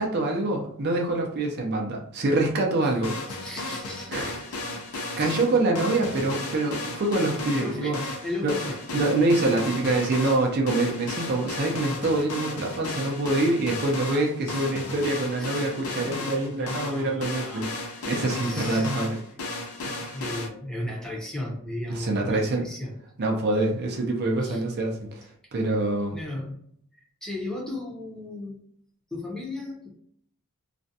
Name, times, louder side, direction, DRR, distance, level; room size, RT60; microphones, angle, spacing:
voice 1, 0.0-3.2 4.1-4.4 4.9-8.0 8.4-8.5 8.9-17.7 18.1-19.2 19.8-20.2 21.9-22.7 23.2-26.2, right 2 dB, 45° right, 1 dB, 0.5 m, -25 dB
sound 1, 3.0-20.5, left 2 dB, 75° left, 0.5 m, -34 dB
voice 2, 3.3-4.4 4.7-5.4 6.7-6.8 7.3-9.4 9.8-10.4 14.1-14.2 14.5-14.7 15.3-17.7 18.3-18.9 20.1-23.0 24.4-24.6 26.1-26.6 26.9-28.6 29.1-29.9, left 1 dB, 5° left, -3 dB, 0.6 m, -36 dB
2.4 x 2.1 x 2.6 m, 0.66 s
head